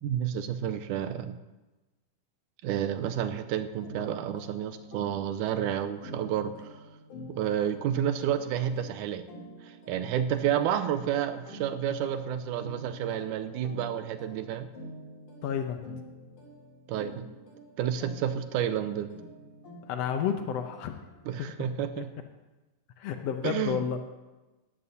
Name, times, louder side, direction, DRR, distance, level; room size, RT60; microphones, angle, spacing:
voice 1, 0.0-1.4 2.6-6.7 7.3-9.2 9.6-14.7 16.9-17.3 17.8-19.1 21.3-22.1 23.4-23.8, right 9 dB, 80° right, 9 dB, 2.0 m, -30 dB
sound 1, 3.8-21.3, equal, 65° left, 4.3 m, -48 dB
voice 2, 15.4-15.8 19.9-21.0 21.4-21.5 23.0-24.0, left 8 dB, 90° left, 6 dB, 1.4 m, -31 dB
19.5 x 13.5 x 2.8 m, 1.1 s
omnidirectional pair, 3.9 m